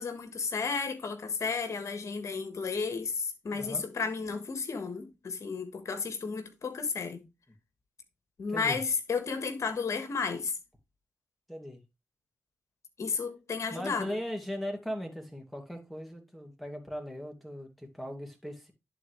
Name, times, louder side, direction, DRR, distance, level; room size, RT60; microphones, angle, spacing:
voice 1, 0.0-7.2 8.4-10.5 13.0-14.1, left 5 dB, 65° left, 1.5 m, -33 dB
voice 2, 3.5-3.8 8.5-8.8 11.5-11.8 13.7-18.7, equal, ahead, 2.5 m, -38 dB
11.0 x 4.1 x 3.3 m
supercardioid pair, 45°, 6 cm